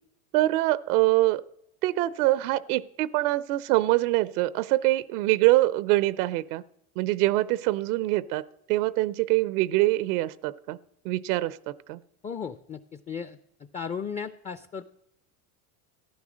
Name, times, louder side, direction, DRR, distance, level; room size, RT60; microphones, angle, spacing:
voice 1, 0.3-1.4 1.8-6.6 7.0-10.8 11.0-12.0, right 17 dB, 80° right, 18 dB, 0.7 m, -24 dB
voice 2, 12.2-13.4 13.7-14.8, left 6 dB, 15° left, 12 dB, 0.4 m, -35 dB
14.5 x 10.5 x 6.3 m, 0.78 s
supercardioid pair, 120°, 44 cm